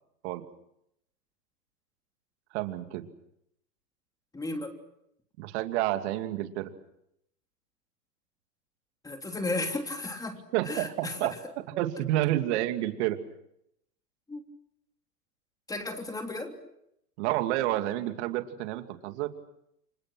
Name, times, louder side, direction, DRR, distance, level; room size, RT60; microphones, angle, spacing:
voice 1, 2.5-3.1 5.4-6.7 10.5-11.3 11.8-13.2 17.2-19.3, right 15 dB, 45° right, 7 dB, 2.6 m, -29 dB
voice 2, 4.3-4.7 9.0-10.4 10.7-11.4 14.3-14.4 15.7-16.5, left 2 dB, 5° left, 4 dB, 3.3 m, -34 dB
30.0 x 25.0 x 6.2 m, 0.78 s
hypercardioid pair, 130°, 49 cm